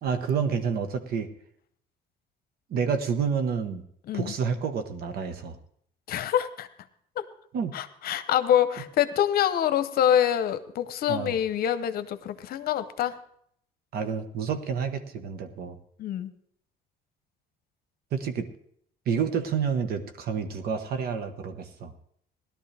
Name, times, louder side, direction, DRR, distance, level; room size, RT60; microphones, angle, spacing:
voice 1, 0.0-1.3 2.7-3.8 4.1-5.6 7.5-7.8 11.1-11.4 13.9-15.8 18.1-18.5 19.1-21.9, right 6 dB, 65° right, 8 dB, 1.3 m, -29 dB
voice 2, 6.1-6.7 7.2-7.3 7.7-13.2 16.0-16.3, left 10 dB, 65° left, 12 dB, 0.9 m, -25 dB
17.5 x 12.0 x 3.4 m, 0.67 s
cardioid pair, 110°, 17 cm